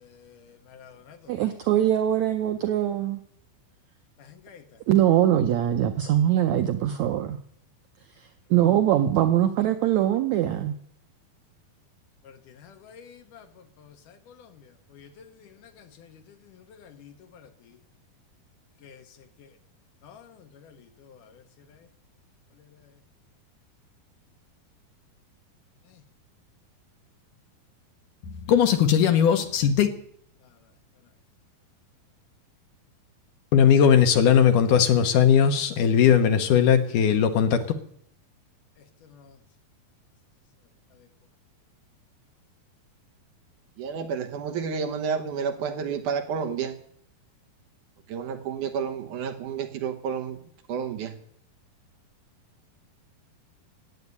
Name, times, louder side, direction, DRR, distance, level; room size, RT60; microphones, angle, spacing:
voice 1, 0.7-1.2 4.5-4.6 12.3-13.5 13.8-14.5 14.9-15.2 15.6-16.1 16.8-17.5 18.8-19.0 20.0-20.4 20.6-20.8 21.0-21.2 28.4-29.9 33.5-37.7 39.1-39.3, left 8 dB, 70° left, 2.4 m, -22 dB
voice 2, 1.3-3.2 4.9-7.4 8.5-10.7, right 11 dB, 90° right, 1.6 m, -22 dB
voice 3, 43.8-46.8 48.1-50.4 50.7-51.2, right 6 dB, 65° right, 2.3 m, -30 dB
16.5 x 8.1 x 9.6 m
omnidirectional pair, 4.3 m